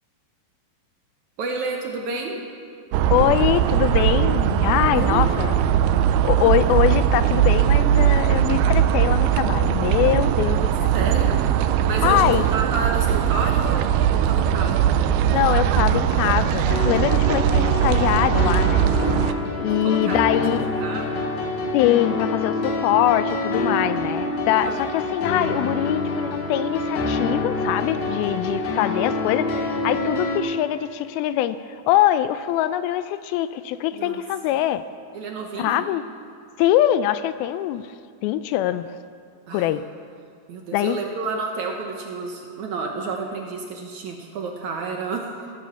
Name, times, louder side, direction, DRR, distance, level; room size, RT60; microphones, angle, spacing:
voice 1, 1.4-2.4 4.9-5.4 10.9-11.4 11.9-14.9 19.8-21.2 24.5-24.9 33.9-34.2 35.1-35.8 39.5-39.7 40.5-45.4, right 4 dB, 65° right, 2 dB, 2.1 m, -30 dB
sound 1, 2.9-19.3, right 10 dB, 85° right, 2.5 m, -20 dB
voice 2, 3.1-5.6 6.2-10.9 12.0-12.4 15.3-18.9 19.6-20.7 21.7-31.6 31.9-34.8 35.6-36.0 36.6-37.9 38.2-38.9 39.5-39.8 40.7-41.0, left 12 dB, 85° left, 13 dB, 2.3 m, -23 dB
sound 2, 16.7-30.4, left 2 dB, 65° left, 3.0 m, -26 dB
15.5 x 13.0 x 7.0 m, 2.3 s
omnidirectional pair, 4.4 m